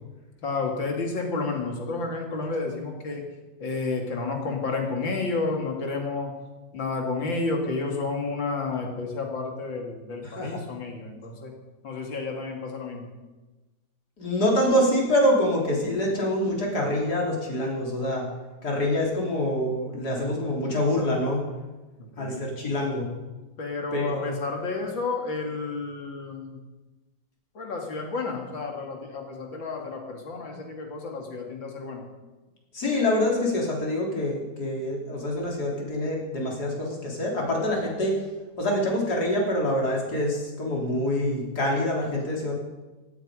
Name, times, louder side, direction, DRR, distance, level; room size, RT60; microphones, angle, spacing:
voice 1, 0.4-3.2 3.6-6.3 6.7-11.5 11.8-13.1 22.0-22.5 23.6-26.6 27.5-32.1, left 3 dB, 80° left, 2 dB, 3.3 m, -31 dB
voice 2, 10.2-10.6 14.2-18.3 18.6-21.4 22.2-23.1 23.9-24.3 32.7-38.2 38.6-42.6, left 1 dB, 55° left, -1 dB, 4.1 m, -25 dB
17.0 x 15.0 x 5.1 m, 1.2 s
omnidirectional pair, 2.1 m